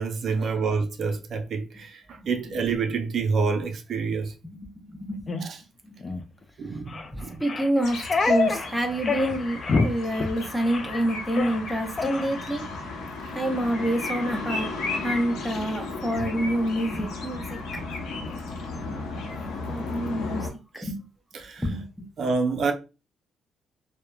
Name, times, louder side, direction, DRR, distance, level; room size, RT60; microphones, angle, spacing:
voice 1, 0.0-4.3 5.4-5.6 6.6-7.4 20.8-20.9 21.3-21.6 22.2-22.7, right 4 dB, 60° right, 0.4 m, -27 dB
voice 2, 4.9-5.5 5.9-6.0 7.1-12.6 13.3-17.6 19.7-20.4 20.8-21.0 21.6-22.1, right 1 dB, ahead, 0.7 m, -28 dB
sound 1, 5.3-5.4 6.0-6.2 6.9-7.1 7.4-8.7 9.0-9.4 9.6-9.9 10.1-10.3 10.7-11.0 11.3-11.6 12.0-12.3, left 3 dB, 40° left, 0.3 m, -26 dB
sound 2, 7.8-20.5, left 3 dB, 85° left, 0.7 m, -34 dB
2.8 x 2.0 x 2.2 m
cardioid pair, 90°, 0 cm